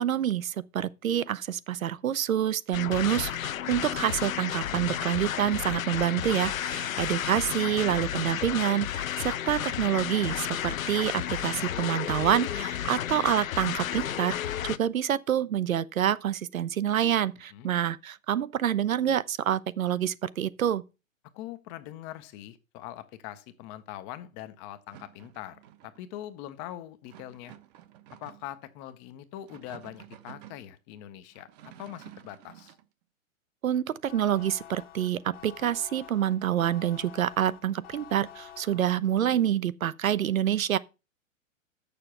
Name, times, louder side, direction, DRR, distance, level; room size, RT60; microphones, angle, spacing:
voice 1, 0.0-20.8 33.6-40.8, right 10 dB, 85° right, 0.7 m, -27 dB
sound 1, 2.7-14.8, left 11 dB, 80° left, 0.6 m, -32 dB
voice 2, 21.3-27.6 28.2-31.5 31.8-32.7, left 13 dB, 15° left, 0.4 m, -42 dB
sound 2, 24.9-26.0 27.1-28.6 29.3-30.7 31.3-32.9, right 12 dB, 30° right, 0.7 m, -51 dB
sound 3, 34.1-39.3, left 10 dB, 60° left, 1.7 m, -49 dB
6.7 x 6.6 x 5.9 m
hypercardioid pair, 130°, 40 cm